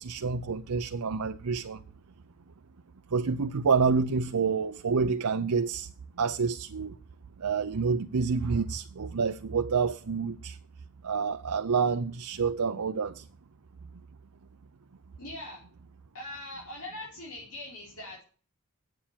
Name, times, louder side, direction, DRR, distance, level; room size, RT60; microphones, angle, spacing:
voice 1, 0.0-1.8 3.1-5.9 6.2-6.9 7.4-10.6 11.0-13.2, right 5 dB, 85° right, 0.7 m, -28 dB
voice 2, 15.2-15.6 16.1-18.2, left 1 dB, 80° left, 5.2 m, -41 dB
9.3 x 8.6 x 8.8 m
head